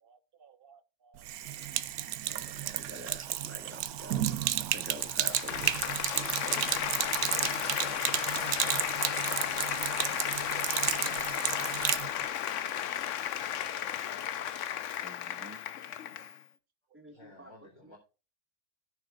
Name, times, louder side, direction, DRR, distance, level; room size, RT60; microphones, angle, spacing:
voice 1, 0.0-1.2 2.3-2.4 8.7-8.9 11.9-12.0 12.5-12.6 15.5-15.9 16.2-16.3 17.2-17.3, right 6 dB, 45° right, 1.0 m, -61 dB
Sink (filling or washing), 1.2-12.1, right 12 dB, 90° right, 1.2 m, -32 dB
voice 2, 2.3-4.2 4.6-6.7 14.1-14.2 15.0-15.6 16.9-17.5 17.9-18.0, right 1 dB, 10° right, 1.6 m, -47 dB
Applause, 4.8-16.4, left 10 dB, 65° left, 1.0 m, -34 dB
voice 3, 17.1-18.0, left 1 dB, 30° left, 3.1 m, -54 dB
17.5 x 6.6 x 2.4 m
omnidirectional pair, 1.5 m